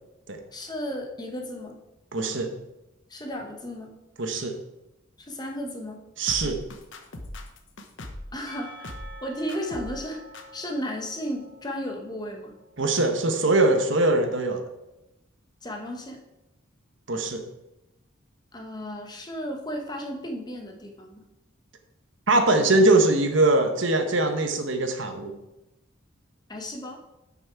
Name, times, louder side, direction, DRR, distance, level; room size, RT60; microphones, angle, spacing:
voice 1, 0.5-1.7 3.1-3.9 5.2-6.1 8.3-8.9 9.2-10.2 10.5-12.5 15.6-16.2 18.5-21.2 26.5-27.0, equal, 20° left, 2 dB, 1.1 m, -34 dB
voice 2, 2.1-2.5 4.2-4.5 6.2-6.6 12.8-14.6 17.1-17.4 22.3-25.3, right 2 dB, 65° right, 5 dB, 1.1 m, -22 dB
sound 1, 6.3-8.3 8.8-9.2 9.5-10.0 10.3-10.4, left 1 dB, 60° left, 1.0 m, -39 dB
Percussion / Church bell, 8.5-12.9, equal, 25° right, 2.9 m, -47 dB
9.1 x 6.1 x 4.6 m, 0.92 s
head